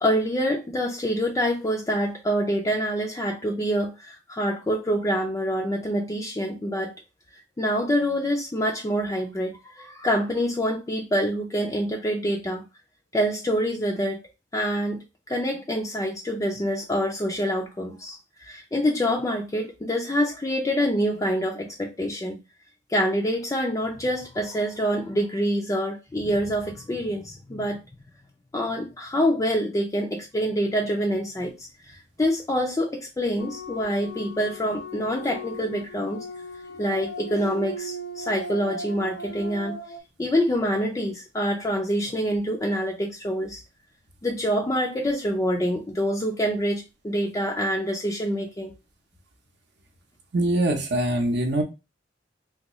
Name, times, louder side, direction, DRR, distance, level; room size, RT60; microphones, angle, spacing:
voice 1, 0.0-6.9 7.6-12.6 13.1-14.2 14.5-15.0 15.3-22.4 22.9-27.8 28.5-31.7 32.2-36.2 36.8-39.8 40.2-43.6 44.2-48.7, equal, 20° left, 1 dB, 0.4 m, -26 dB
sound 1, 33.4-40.0, equal, 70° left, 0.5 m, -37 dB
voice 2, 50.3-51.6, right 1 dB, 65° right, 4 dB, 0.7 m, -23 dB
3.5 x 2.3 x 2.9 m, 0.26 s
head